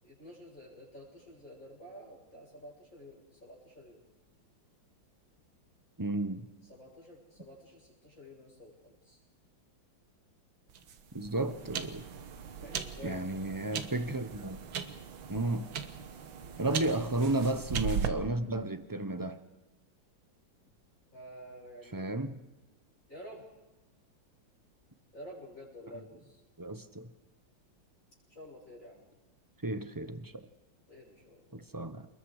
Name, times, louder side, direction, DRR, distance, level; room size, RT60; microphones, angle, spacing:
voice 1, 0.0-4.0 6.6-9.2 12.6-13.2 16.4-16.8 21.1-22.1 23.1-23.4 25.1-26.4 28.3-29.0 30.9-31.6, equal, 40° left, 7.5 m, -50 dB
voice 2, 6.0-6.5 11.1-12.0 13.0-14.6 15.3-15.7 16.6-19.4 21.9-22.4 26.6-27.1 29.6-30.5 31.5-32.1, right 2 dB, 15° right, 0.8 m, -33 dB
sound 1, 10.7-18.1, right 8 dB, 85° right, 2.1 m, -38 dB
28.5 x 21.0 x 5.0 m
omnidirectional pair, 2.1 m